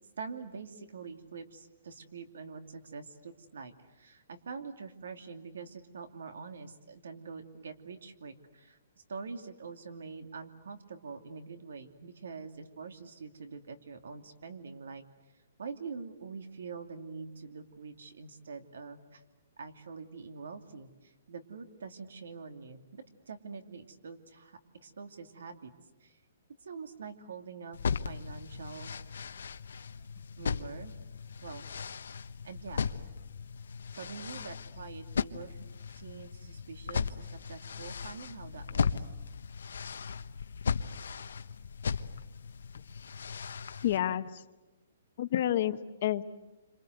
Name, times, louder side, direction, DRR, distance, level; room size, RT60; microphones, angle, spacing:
voice 1, 0.2-15.0 15.6-19.2 19.6-25.7 26.0-26.2 26.6-28.9 30.4-31.0 31.4-31.7 32.4-32.9 33.9-39.1, right 5 dB, 85° right, 7 dB, 2.7 m, -45 dB
sound 1, 27.7-44.0, left 6 dB, 90° left, 1.1 m, -37 dB
voice 2, 43.8-44.3 45.2-46.2, left 12 dB, 40° left, 11 dB, 1.0 m, -29 dB
28.0 x 26.5 x 8.1 m, 1.1 s
hypercardioid pair, 175°, 0 cm